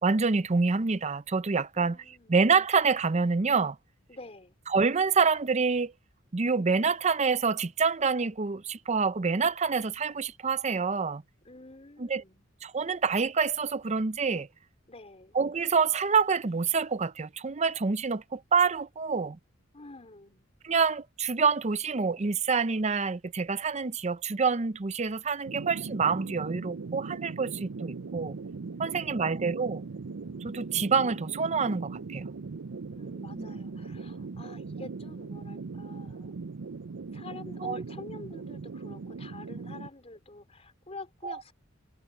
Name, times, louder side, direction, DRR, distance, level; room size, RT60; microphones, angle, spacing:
voice 1, 0.0-3.8 4.7-5.9 6.3-11.2 12.0-12.2 12.6-14.5 15.3-19.4 20.6-28.4 28.8-29.8 30.4-32.3 33.4-33.5 37.6-37.8 41.2-41.4, right 5 dB, 35° right, 0.6 m, -27 dB
voice 2, 1.8-2.4 4.1-4.6 11.4-12.5 14.9-15.4 19.7-20.5 28.9-29.6 32.9-36.3 37.1-41.5, left 3 dB, 30° left, 3.6 m, -48 dB
sound 1, 25.5-39.9, right 4 dB, 85° right, 0.6 m, -39 dB
head